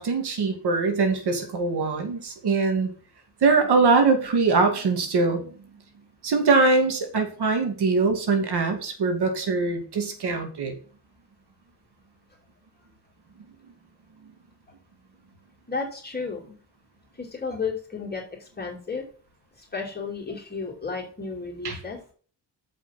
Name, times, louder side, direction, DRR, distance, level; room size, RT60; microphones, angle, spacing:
voice 1, 0.0-2.9 3.4-5.7 6.2-10.8 21.6-21.8, right 4 dB, 65° right, 5 dB, 2.4 m, -22 dB
voice 2, 15.7-16.6 17.1-19.0 19.6-22.0, left 4 dB, 25° left, -1 dB, 2.8 m, -33 dB
7.0 x 5.7 x 5.8 m, 0.42 s
cardioid pair, 80°, 42 cm